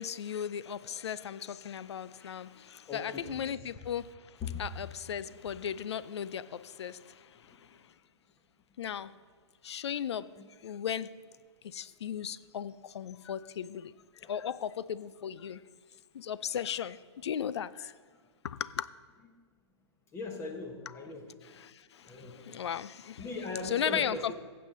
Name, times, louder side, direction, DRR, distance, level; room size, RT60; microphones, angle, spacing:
voice 1, 0.0-4.1 4.6-7.0 8.8-9.1 9.6-10.3 10.6-11.1 11.7-13.9 14.3-15.6 16.1-17.0 17.2-17.9 18.4-18.9 21.5-21.7 22.4-23.3 23.6-24.3, left 9 dB, 65° left, 17 dB, 0.5 m, -36 dB
voice 2, 2.9-3.5 4.4-4.6 10.2-10.5 14.2-14.3 20.1-21.6 22.0-22.4 23.2-24.3, left 3 dB, 15° left, 4 dB, 1.3 m, -40 dB
15.5 x 7.6 x 3.9 m, 1.5 s
figure-of-eight pair, 120°, 15 cm